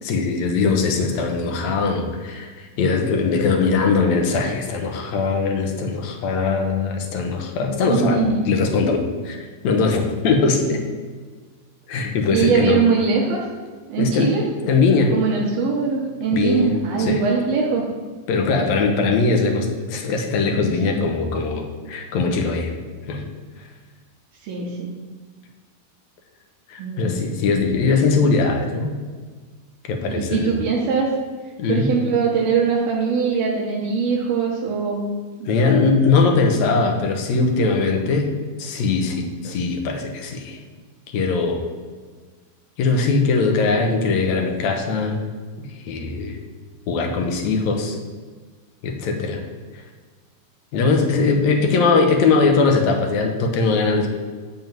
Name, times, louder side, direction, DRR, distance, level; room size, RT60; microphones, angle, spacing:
voice 1, 0.0-9.4 9.6-10.8 11.9-12.8 14.0-14.3 14.7-15.2 16.3-16.7 17.0-17.2 18.3-22.7 23.1-23.3 26.7-28.9 29.9-30.6 31.6-31.9 35.4-38.3 38.6-40.6 41.1-41.6 42.8-45.2 45.6-46.4 46.9-48.0 48.8-49.4 50.7-54.1, left 4 dB, 65° left, 3 dB, 1.9 m, -20 dB
voice 2, 3.6-4.0 7.6-8.4 12.3-13.4 13.9-14.5 15.1-17.8 20.8-21.0 24.4-24.9 26.8-27.1 27.4-27.8 30.1-31.1 31.7-35.1 35.4-35.8 36.5-36.6, right 5 dB, 75° right, -3 dB, 3.0 m, -22 dB
11.0 x 3.7 x 7.5 m, 1.5 s
omnidirectional pair, 4.4 m